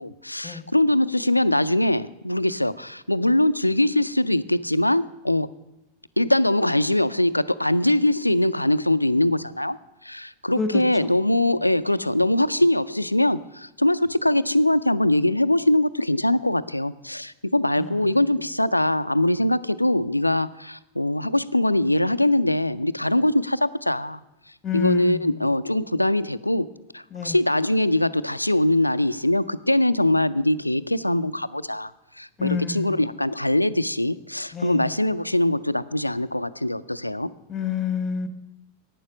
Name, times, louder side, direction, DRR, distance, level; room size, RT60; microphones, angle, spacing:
voice 1, 0.0-5.5 6.2-9.8 10.0-24.2 24.7-26.7 26.9-31.9 32.2-37.3, left 1 dB, 85° left, 15 dB, 0.4 m, -22 dB
voice 2, 10.6-11.1 17.8-18.1 24.6-25.4 27.1-27.4 32.4-33.1 34.5-34.9 37.5-38.3, left 6 dB, 20° left, 10 dB, 1.3 m, -29 dB
11.0 x 9.2 x 6.1 m, 0.95 s
figure-of-eight pair, 90°, 0 cm